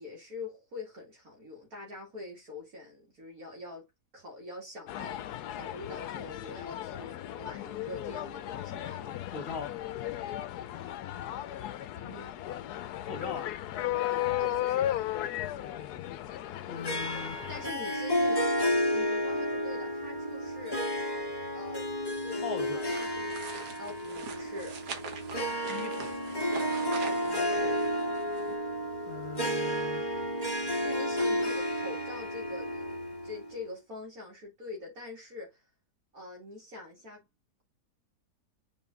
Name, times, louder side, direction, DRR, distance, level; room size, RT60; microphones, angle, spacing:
voice 1, 0.0-3.8 4.1-9.2 11.9-12.4 14.4-15.0 17.2-18.5 18.9-20.9 21.5-22.4 22.7-23.4 23.8-24.8 27.0-27.8 30.8-35.6 36.1-37.3, left 2 dB, 65° right, 2.7 m, -44 dB
sound 1, 4.9-17.7, left 13 dB, 80° left, 1.2 m, -35 dB
voice 2, 9.3-9.8 13.0-13.5 15.4-16.2 16.7-17.4 22.4-22.8 25.7-26.1 29.1-30.0, left 5 dB, 60° left, 1.9 m, -40 dB
Harp, 16.8-33.6, equal, 15° left, 1.9 m, -31 dB
sound 2, 22.6-28.5, right 5 dB, 85° right, 1.8 m, -44 dB
6.9 x 4.3 x 3.7 m
omnidirectional pair, 1.7 m